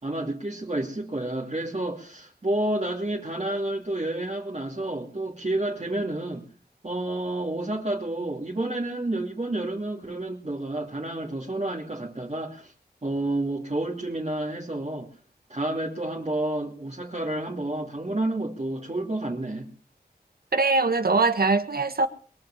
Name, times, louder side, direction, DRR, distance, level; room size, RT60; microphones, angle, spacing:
voice 1, 0.0-6.4 6.8-12.7 13.0-15.1 15.5-19.7, right 1 dB, 40° right, 2.6 m, -30 dB
voice 2, 20.5-22.1, right 3 dB, 65° right, 1.7 m, -22 dB
22.0 x 7.8 x 7.4 m
wide cardioid pair, 65°, 17 cm